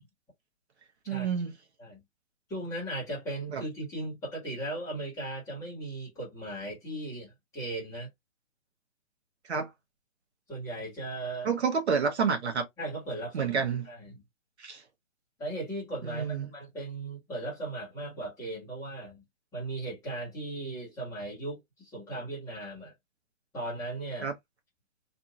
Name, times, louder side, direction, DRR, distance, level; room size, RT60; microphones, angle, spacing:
voice 1, 1.1-1.5 3.5-3.6 9.5-9.7 11.4-12.7 13.3-13.9 14.6-14.8 16.0-16.5 24.2-24.3, right 6 dB, 55° right, 1.0 m, -29 dB
voice 2, 2.5-8.1 10.5-11.5 12.8-14.2 15.4-19.2 19.5-22.9 23.5-24.3, right 2 dB, 10° left, 1.2 m, -37 dB
2.6 x 2.5 x 2.7 m
hypercardioid pair, 155°, 40 cm